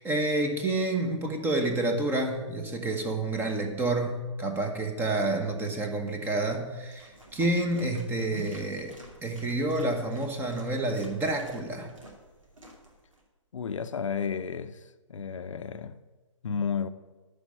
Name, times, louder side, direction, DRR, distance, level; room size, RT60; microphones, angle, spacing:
voice 1, 0.0-8.9 9.2-11.9 16.5-16.6, right 2 dB, 15° right, 1.2 m, -29 dB
sound 1, 6.9-13.2, right 1 dB, 90° right, 2.8 m, -48 dB
voice 2, 13.5-14.8 15.1-16.0 16.4-16.9, left 6 dB, 75° left, 0.6 m, -32 dB
9.9 x 5.2 x 7.7 m
hypercardioid pair, 130°, 16 cm